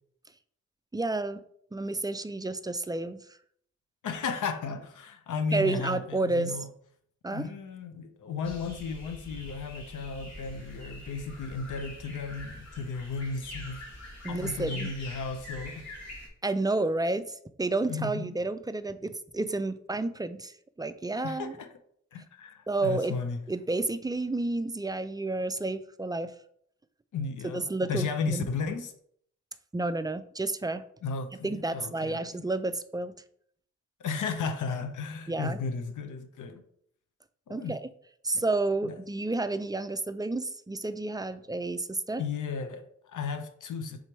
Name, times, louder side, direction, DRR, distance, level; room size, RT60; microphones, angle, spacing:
voice 1, 0.9-1.4 1.7-3.4 5.5-6.6 7.2-7.5 14.2-14.9 16.4-21.6 22.7-23.2 23.5-26.3 27.5-28.5 29.7-30.8 31.4-33.1 35.3-35.6 37.5-37.8 38.2-42.2, right 2 dB, 15° right, 0.4 m, -30 dB
voice 2, 4.0-6.7 7.3-13.8 14.3-15.9 17.9-18.3 21.2-21.7 22.1-23.4 27.1-28.9 31.0-32.2 34.0-36.6 37.5-37.8 38.3-38.4 38.8-38.9 42.2-44.0, left 4 dB, 75° left, 0.6 m, -34 dB
sound 1, 8.4-16.3, left 1 dB, 55° left, 1.8 m, -44 dB
3.9 x 2.9 x 4.5 m
supercardioid pair, 40°, 31 cm